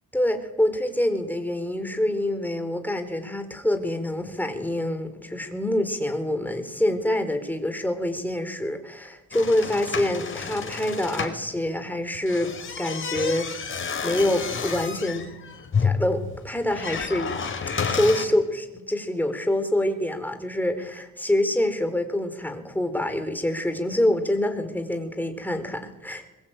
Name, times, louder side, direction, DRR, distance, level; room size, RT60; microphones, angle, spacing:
voice 1, 0.1-12.5 12.8-13.5 14.0-15.2 15.8-17.3 17.8-26.3, left 1 dB, 5° left, 7 dB, 4.4 m, -26 dB
sound 1, 9.3-11.4 12.1-18.2, left 5 dB, 40° left, 4.6 m, -30 dB
22.5 x 22.5 x 9.2 m, 1.1 s
cardioid pair, 90°, 30 cm